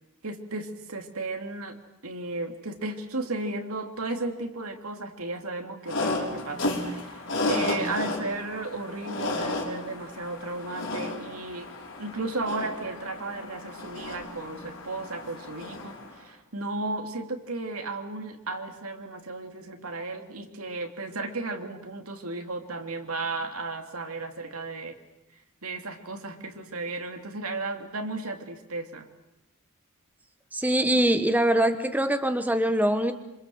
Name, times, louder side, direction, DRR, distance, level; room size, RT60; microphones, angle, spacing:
voice 1, 0.2-1.8 2.0-11.7 12.0-24.9 25.6-29.1, right 2 dB, 70° right, 5 dB, 3.0 m, -34 dB
sound 1, 5.9-16.2, left 2 dB, 60° left, 5.7 m, -33 dB
voice 2, 30.5-33.1, right 1 dB, 5° right, 8 dB, 1.1 m, -23 dB
26.5 x 26.5 x 7.9 m, 0.92 s
head